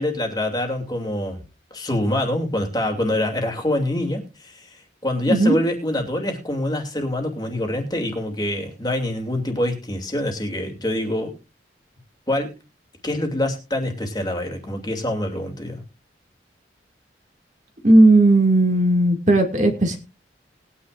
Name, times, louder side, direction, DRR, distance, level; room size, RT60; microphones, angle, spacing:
voice 1, 0.0-1.4 1.7-11.3 12.3-12.5 13.0-15.8, left 1 dB, 20° left, 3 dB, 2.7 m, -25 dB
voice 2, 17.8-20.0, right 2 dB, 40° right, 4 dB, 2.2 m, -15 dB
20.0 x 10.0 x 2.5 m, 0.29 s
head